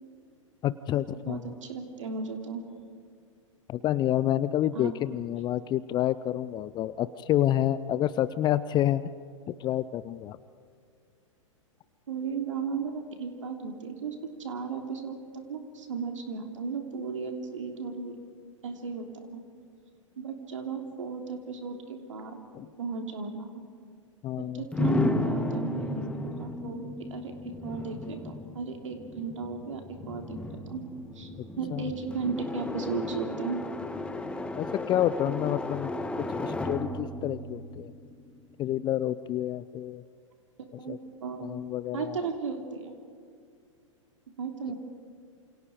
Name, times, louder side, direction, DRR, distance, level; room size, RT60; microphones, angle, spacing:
voice 1, 0.6-1.5 3.7-9.0 9.5-10.4 22.5-22.7 24.2-24.7 31.7-32.0 34.6-35.9 36.4-37.9 38.6-40.0 40.9-41.0 41.4-42.4, left 12 dB, 25° left, 15 dB, 0.6 m, -28 dB
voice 2, 1.2-2.6 4.7-4.9 12.1-18.2 18.6-19.4 20.2-22.4 22.8-23.6 24.4-30.8 31.1-31.3 31.6-33.6 40.8-41.4 41.9-42.9 44.4-44.7, right 5 dB, 70° right, 4 dB, 3.2 m, -35 dB
sound 1, 24.7-38.5, left 2 dB, 5° left, 1.5 m, -34 dB
28.5 x 27.5 x 5.0 m, 2.3 s
figure-of-eight pair, 100°, 17 cm